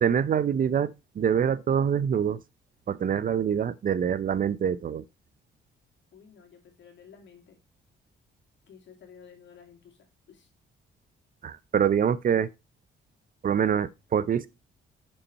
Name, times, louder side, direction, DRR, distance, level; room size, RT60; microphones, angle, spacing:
voice 1, 0.0-2.4 2.9-5.0 11.4-12.5 13.4-14.5, right 8 dB, 45° right, 0.6 m, -25 dB
voice 2, 6.1-7.6 8.7-10.5, left 7 dB, 65° left, 2.4 m, -53 dB
7.2 x 5.5 x 4.1 m
cardioid pair, 90°, 20 cm